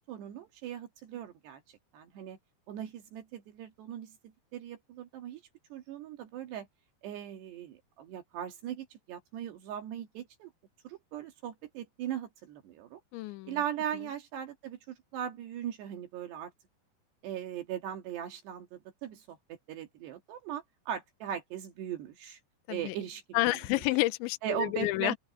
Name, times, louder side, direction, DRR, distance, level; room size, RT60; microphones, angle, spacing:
voice 1, 0.0-1.6 1.9-2.4 2.7-5.4 5.7-6.7 7.0-10.5 10.8-13.0 13.5-16.5 17.2-22.4 22.7-23.6 24.4-25.2, right 10 dB, 70° right, 3.8 m, -39 dB
voice 2, 13.1-13.6 22.7-23.0 23.3-25.1, left 19 dB, 85° left, 3.1 m, -29 dB
open air
omnidirectional pair, 5.3 m